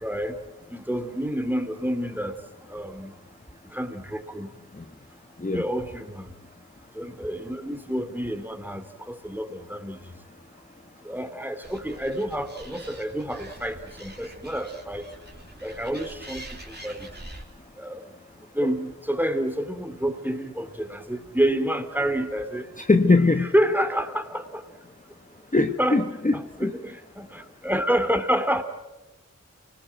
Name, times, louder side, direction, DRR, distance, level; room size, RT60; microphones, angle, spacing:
voice 1, 0.0-0.3 0.7-2.4 2.7-3.1 3.7-4.5 5.5-6.3 7.0-10.0 11.0-15.0 15.6-17.0 17.8-18.0 18.5-22.7 23.4-24.4 25.8-26.0 26.3-28.6, equal, 5° right, 8 dB, 2.7 m, -28 dB
Animal, 11.6-17.4, right 1 dB, 35° right, 3.6 m, -44 dB
voice 2, 22.8-23.5 25.5-26.7, left 3 dB, 25° left, 6 dB, 1.1 m, -21 dB
29.0 x 19.5 x 9.1 m, 1.1 s
wide cardioid pair, 55°, 30 cm